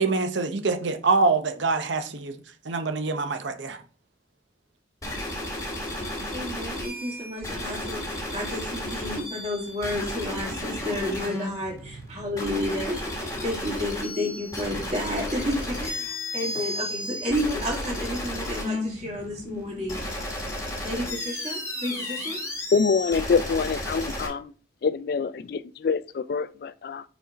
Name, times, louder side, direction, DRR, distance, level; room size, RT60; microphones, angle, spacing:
voice 1, 0.0-2.3 2.6-3.8, right 3 dB, 70° right, 0.7 m, -25 dB
sound 1, 5.0-24.3, left 1 dB, 20° left, 1.8 m, -33 dB
voice 2, 6.3-20.0 20.8-22.4, left 1 dB, 35° right, 2.2 m, -31 dB
voice 3, 22.7-24.5 24.8-27.0, left 5 dB, 50° left, 0.3 m, -25 dB
4.6 x 4.4 x 5.0 m
head